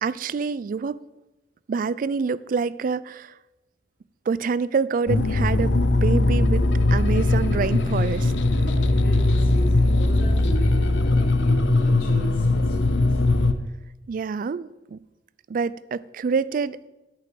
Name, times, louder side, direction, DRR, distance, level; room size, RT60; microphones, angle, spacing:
voice 1, 0.0-1.0 1.7-3.3 4.3-6.6 6.9-8.3 14.1-15.0 15.5-16.9, right 5 dB, 50° right, 19 dB, 0.3 m, -26 dB
sound 1, 5.1-13.5, left 2 dB, 90° left, 0.7 m, -20 dB
voice 2, 8.5-13.0, right 2 dB, 55° left, -6 dB, 2.7 m, -36 dB
8.8 x 5.7 x 7.6 m, 1.0 s
head